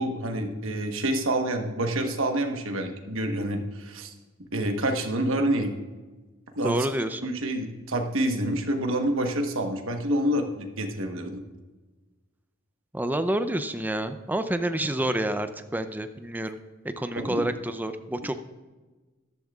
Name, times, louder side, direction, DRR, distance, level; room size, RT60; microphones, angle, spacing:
voice 1, 0.0-4.1 4.5-5.7 6.6-6.8 7.2-11.4 17.1-17.5, right 1 dB, 70° right, 4 dB, 1.2 m, -27 dB
voice 2, 6.6-7.3 12.9-16.6 16.8-18.4, right 1 dB, 10° right, 9 dB, 0.5 m, -28 dB
13.5 x 12.0 x 2.4 m, 1.2 s
head